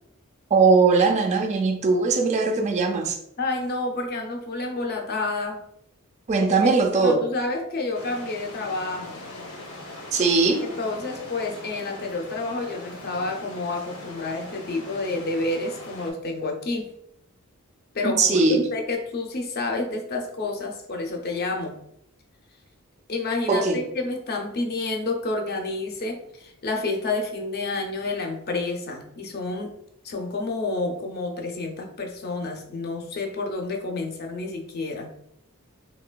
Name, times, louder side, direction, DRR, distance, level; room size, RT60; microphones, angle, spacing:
voice 1, 0.5-3.2 6.3-7.2 10.1-10.6 18.2-18.6 23.5-23.8, right 4 dB, 30° right, 4 dB, 0.3 m, -20 dB
voice 2, 3.4-5.6 6.4-6.5 6.9-9.2 10.6-16.9 17.9-21.8 23.1-29.7 30.0-35.1, left 3 dB, 45° left, 3 dB, 0.5 m, -29 dB
sound 1, 7.9-16.1, left 1 dB, 75° left, 0.7 m, -41 dB
3.1 x 2.8 x 2.2 m, 0.76 s
head